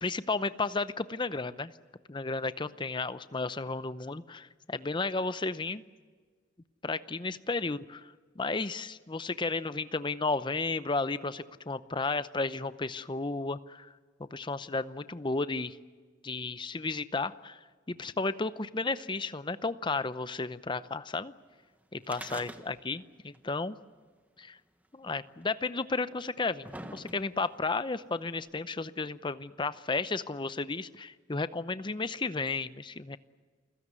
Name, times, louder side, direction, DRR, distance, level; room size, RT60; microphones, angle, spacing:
voice 1, 0.0-1.7 2.1-5.8 6.8-13.9 14.2-15.8 16.2-17.6 17.9-21.3 21.9-23.8 24.4-24.6 24.9-33.2, left 3 dB, 25° left, 14 dB, 0.7 m, -33 dB
sound 1, 22.0-23.1 23.3-23.4 24.4-24.5 25.4-25.5 26.2-27.5 28.4-28.5, right 1 dB, 10° right, 1.3 m, -44 dB
28.5 x 16.0 x 9.7 m, 1.5 s
head